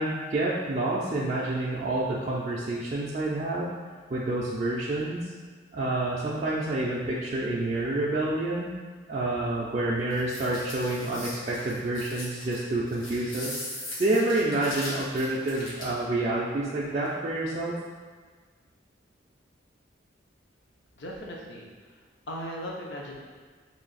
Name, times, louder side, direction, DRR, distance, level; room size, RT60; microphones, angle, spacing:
voice 1, 0.0-3.7 4.1-5.3 5.7-8.7 9.1-13.6 14.0-17.8, right 2 dB, 35° right, -7 dB, 0.4 m, -28 dB
sound 1, 10.1-16.0, left 1 dB, 85° left, 1.3 m, -39 dB
voice 2, 21.0-21.7 22.3-23.2, equal, 65° left, -2 dB, 0.6 m, -37 dB
3.1 x 2.7 x 4.0 m, 1.5 s
head